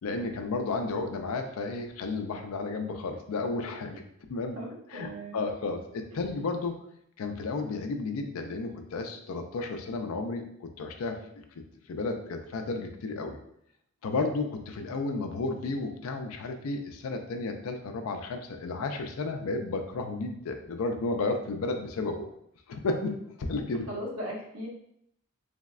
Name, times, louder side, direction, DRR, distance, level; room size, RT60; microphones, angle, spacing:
voice 1, 0.0-4.0 4.3-4.6 4.9-5.1 5.3-6.8 7.2-11.4 11.9-13.4 14.0-22.3 22.7-23.2 23.5-23.9, left 3 dB, 80° left, 5 dB, 0.4 m, -32 dB
voice 2, 4.5-5.4 6.1-6.2 23.9-24.7, equal, 80° right, -3 dB, 0.8 m, -38 dB
3.3 x 2.0 x 2.3 m, 0.72 s
head